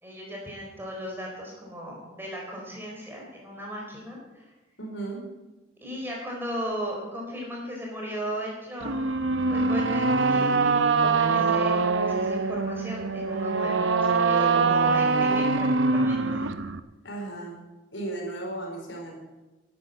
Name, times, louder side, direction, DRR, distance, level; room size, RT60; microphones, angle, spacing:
voice 1, 0.0-4.5 5.8-9.1 9.5-10.6 11.0-16.5, equal, 10° right, -2 dB, 4.6 m, -36 dB
voice 2, 4.8-5.2 17.0-17.6 17.9-19.2, right 2 dB, 80° left, 0 dB, 4.8 m, -35 dB
sound 1, 8.8-16.8, right 4 dB, 80° right, 0.8 m, -23 dB
13.0 x 11.0 x 7.8 m, 1.1 s
head